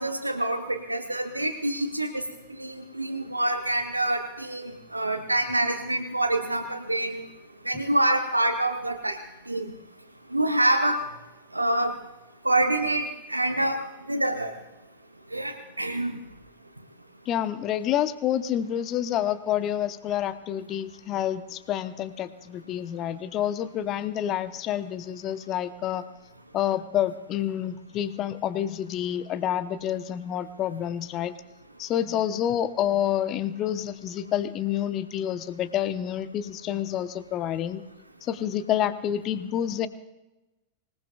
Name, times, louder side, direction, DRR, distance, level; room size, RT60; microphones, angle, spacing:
voice 1, 0.0-2.2 2.5-7.2 7.6-9.2 9.5-9.7 10.3-11.0 11.5-12.0 12.4-13.8 14.1-14.5 15.3-16.2, right 1 dB, 85° right, 4 dB, 1.0 m, -26 dB
voice 2, 17.3-26.0 26.5-31.4 31.8-37.8 38.2-39.9, left 11 dB, 35° left, 13 dB, 0.9 m, -28 dB
25.0 x 18.5 x 2.4 m, 1.0 s
figure-of-eight pair, 90°, 0 cm